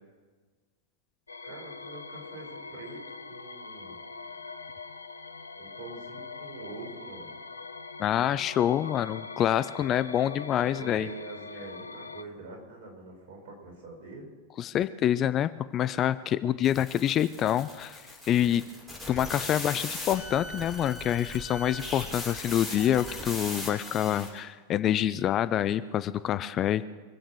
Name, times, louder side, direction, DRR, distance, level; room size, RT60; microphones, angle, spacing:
sound 1, 1.3-12.2, left 4 dB, 80° left, 0.7 m, -43 dB
voice 1, 1.4-3.0 3.3-4.0 5.6-7.4 10.5-14.3 18.3-18.6, right 3 dB, 50° right, 0 dB, 5.7 m, -45 dB
voice 2, 8.0-11.1 14.6-18.6 19.1-26.8, left 11 dB, 30° left, 15 dB, 0.5 m, -27 dB
sound 2, 16.6-24.4, left 2 dB, ahead, 6.7 m, -38 dB
24.5 x 8.7 x 6.3 m, 1.4 s
figure-of-eight pair, 90°, 0 cm